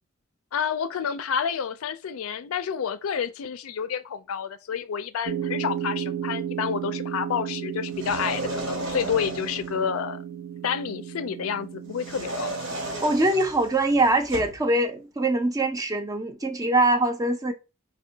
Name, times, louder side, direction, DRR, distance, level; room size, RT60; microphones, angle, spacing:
voice 1, 0.5-10.2 10.6-12.5, left 7 dB, 80° left, 0.4 m, -29 dB
sound 1, 5.3-13.0, right 9 dB, 80° right, 0.4 m, -34 dB
sound 2, 7.9-9.8 11.9-14.6, right 1 dB, 65° right, 1.0 m, -34 dB
voice 2, 13.0-17.5, right 2 dB, 15° right, 0.4 m, -23 dB
4.4 x 2.2 x 2.7 m
head